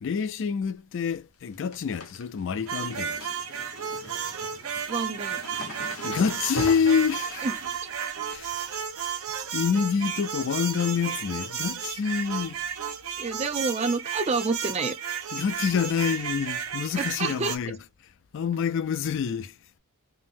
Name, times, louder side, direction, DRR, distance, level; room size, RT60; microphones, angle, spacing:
voice 1, 0.0-3.3 6.0-7.5 8.3-8.6 9.5-12.6 15.3-17.8 18.3-19.6, left 6 dB, 60° left, 0.4 m, -27 dB
sound 1, 0.8-1.1 1.3-10.6 10.9-11.3 11.7-12.5 12.8-12.9 13.9-14.2 14.4-14.5 14.9-15.0 16.6-16.7 17.4-17.5, left 2 dB, 80° left, 1.0 m, -43 dB
sound 2, 2.7-17.6, right 7 dB, 80° right, 0.7 m, -33 dB
voice 2, 4.9-5.4 7.4-7.7 13.2-14.9 17.0-17.5, right 4 dB, 30° right, 0.4 m, -28 dB
3.8 x 2.0 x 2.6 m
head